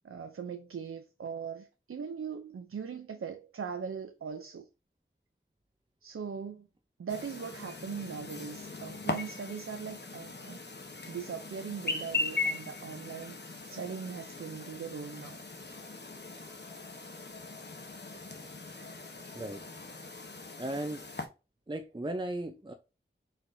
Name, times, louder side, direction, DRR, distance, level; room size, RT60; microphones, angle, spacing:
voice 1, 0.0-4.7 6.0-6.7 7.0-10.6 11.1-15.4, right 6 dB, 85° right, 0.5 m, -40 dB
Chirp tweet, 7.1-21.3, left 3 dB, 55° left, 0.9 m, -39 dB
voice 2, 19.3-19.7 20.6-21.0 21.7-22.7, right 1 dB, 20° right, 0.6 m, -36 dB
4.4 x 3.8 x 2.6 m
wide cardioid pair, 45°, 21 cm